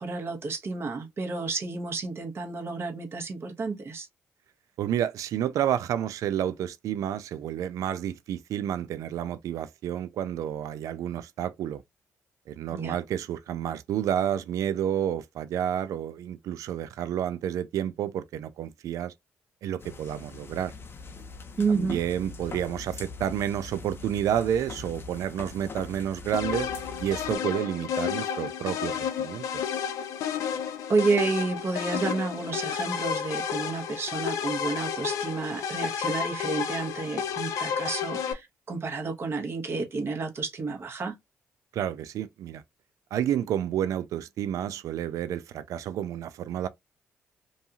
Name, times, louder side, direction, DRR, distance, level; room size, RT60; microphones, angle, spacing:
voice 1, 0.0-4.1 12.7-13.0 21.6-22.0 30.9-41.1, right 3 dB, 45° right, 1.0 m, -30 dB
voice 2, 4.8-11.8 12.5-19.1 19.6-20.7 21.7-26.7 27.0-29.6 41.7-42.6 43.1-46.7, right 10 dB, 75° right, 0.3 m, -30 dB
sound 1, 19.8-27.4, left 4 dB, 45° left, 0.6 m, -42 dB
sound 2, 26.3-38.3, left 8 dB, 80° left, 0.4 m, -31 dB
2.6 x 2.4 x 2.7 m
supercardioid pair, 65°, 6 cm